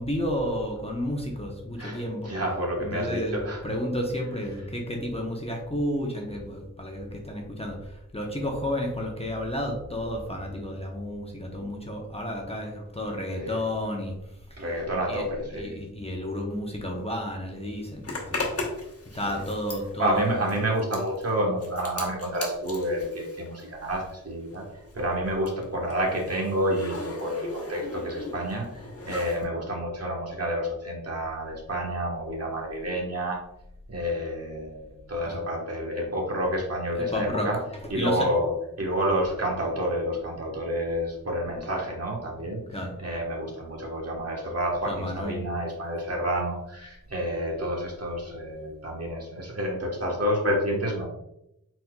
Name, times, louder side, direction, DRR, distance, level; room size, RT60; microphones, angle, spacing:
voice 1, 0.0-2.3 2.8-14.1 15.1-15.3 15.6-18.6 19.1-20.3 35.2-35.4 36.9-37.5 37.8-38.3 42.7-42.9 44.9-45.4, equal, 20° left, 0 dB, 0.7 m, -31 dB
voice 2, 1.8-3.6 13.3-13.6 14.6-15.7 19.2-19.4 20.0-24.7 24.9-33.4 33.9-34.8 35.1-37.6 37.9-38.5 38.8-42.6 43.0-51.1, equal, 50° right, -1 dB, 1.3 m, -29 dB
Zipper (clothing), 18.0-24.2 24.5-29.4, left 2 dB, 45° left, 1.0 m, -37 dB
4.2 x 4.1 x 2.2 m, 0.85 s
wide cardioid pair, 70°, 33 cm